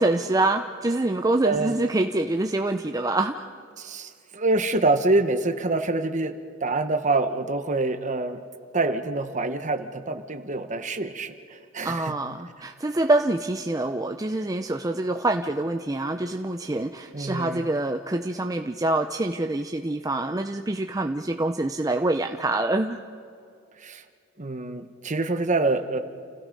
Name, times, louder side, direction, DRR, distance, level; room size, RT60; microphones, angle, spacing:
voice 1, 0.0-3.5 11.8-23.0, right 2 dB, 20° right, 6 dB, 0.5 m, -25 dB
voice 2, 1.4-1.7 3.8-6.4 6.6-8.4 8.7-12.2 17.1-17.7 23.8-24.0 24.4-26.0, right 2 dB, 40° right, 8 dB, 1.2 m, -26 dB
29.5 x 16.5 x 5.3 m, 2.4 s
head